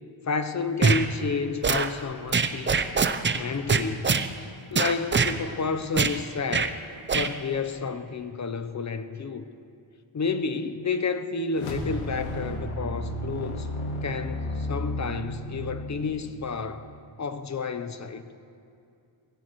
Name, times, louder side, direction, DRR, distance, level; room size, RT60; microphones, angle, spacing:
voice 1, 0.3-2.9 3.3-4.1 4.7-6.8 7.1-9.5 10.1-13.7 14.0-16.9 17.2-18.2, left 4 dB, 35° left, 10 dB, 0.8 m, -30 dB
sound 1, 0.8-1.0 1.6-1.9 2.3-3.4 3.7-4.3 4.7-5.3 6.0-6.2 6.5-6.7 7.1-7.3, right 5 dB, 25° right, 0.6 m, -23 dB
sound 2, 11.5-16.9, left 1 dB, 90° left, 1.9 m, -33 dB
20.0 x 16.0 x 3.1 m, 2.6 s
cardioid pair, 95°, 49 cm